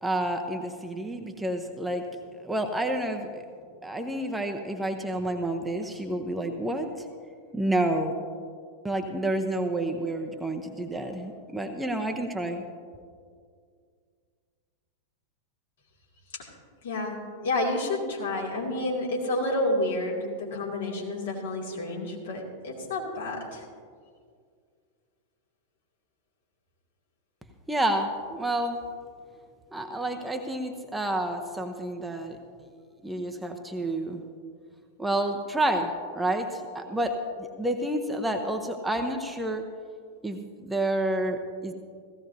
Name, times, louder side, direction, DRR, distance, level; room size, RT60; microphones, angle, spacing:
voice 1, 0.0-2.0 2.4-3.4 3.8-6.9 7.5-8.1 8.8-12.6 27.7-28.8 29.7-32.4 33.0-34.2 35.0-39.6 40.2-41.7, right 1 dB, 5° right, 4 dB, 0.8 m, -29 dB
voice 2, 16.8-23.6, left 2 dB, 60° left, -2 dB, 2.5 m, -30 dB
17.0 x 15.0 x 2.7 m, 2.1 s
figure-of-eight pair, 90°, 0 cm